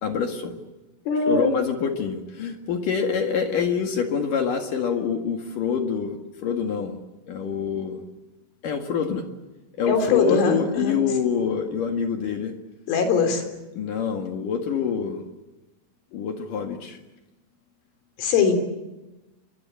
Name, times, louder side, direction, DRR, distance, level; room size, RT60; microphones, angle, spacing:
voice 1, 0.0-0.6 1.3-7.0 7.3-8.0 8.6-9.2 9.8-12.5 13.7-15.2 16.1-17.0, left 6 dB, 55° left, 4 dB, 2.8 m, -26 dB
voice 2, 1.1-1.5 9.9-11.0 12.9-13.4 18.2-18.5, left 5 dB, 85° left, 6 dB, 6.3 m, -21 dB
28.0 x 23.0 x 8.3 m, 1.0 s
omnidirectional pair, 5.6 m